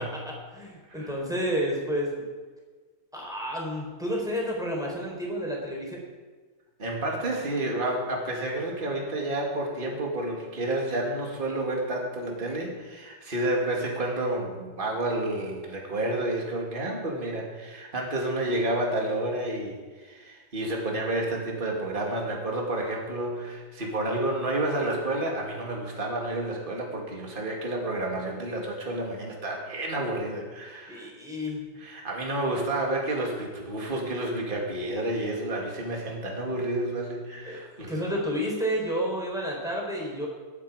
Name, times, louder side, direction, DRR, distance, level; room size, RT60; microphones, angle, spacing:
voice 1, 0.0-2.2 3.1-6.0 30.9-31.6 37.4-40.3, equal, ahead, -2 dB, 3.8 m, -30 dB
voice 2, 6.8-31.1 31.8-37.9, right 1 dB, 25° right, 0 dB, 2.3 m, -30 dB
20.0 x 8.4 x 4.9 m, 1.4 s
omnidirectional pair, 2.1 m